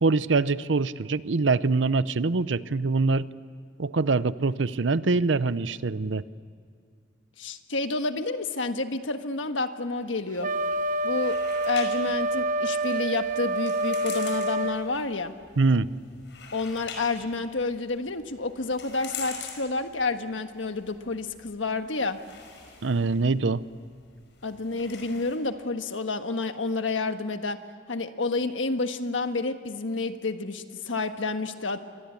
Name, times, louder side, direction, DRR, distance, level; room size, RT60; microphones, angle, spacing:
voice 1, 0.0-3.3 3.8-6.2 15.6-15.9 22.8-23.6, right 3 dB, 75° right, 16 dB, 0.7 m, -24 dB
voice 2, 7.4-10.5 11.0-11.4 11.7-15.3 16.5-22.2 24.4-27.6 27.9-31.8, left 3 dB, 90° left, 8 dB, 1.5 m, -29 dB
sound 1, 10.4-25.4, left 6 dB, 70° left, 5.4 m, -46 dB
Wind instrument woodwind instrument, 10.4-14.8, right 2 dB, 45° right, 1.0 m, -27 dB
28.5 x 23.5 x 8.5 m, 2.2 s
head